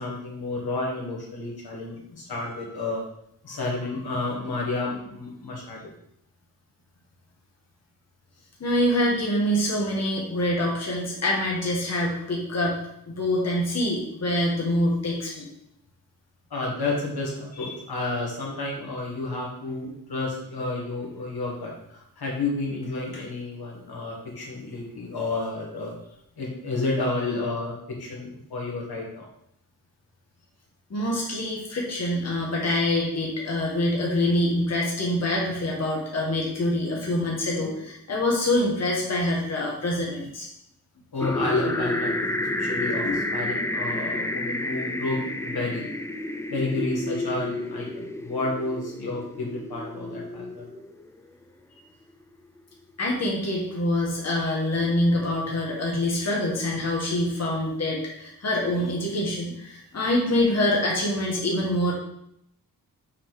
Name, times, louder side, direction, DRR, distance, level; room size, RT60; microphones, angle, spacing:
voice 1, 0.0-3.0 3.4-5.9 16.5-26.0 26.4-29.3 41.1-45.9 46.5-50.7, left 2 dB, 75° left, -2 dB, 2.0 m, -31 dB
voice 2, 8.6-12.8 13.1-15.4 17.6-17.7 30.9-40.5 53.0-61.9, left 1 dB, 45° left, -2 dB, 1.4 m, -25 dB
sound 1, 41.2-51.1, left 1 dB, 10° left, 0.3 m, -30 dB
6.1 x 4.4 x 4.7 m, 0.75 s
wide cardioid pair, 180°, 37 cm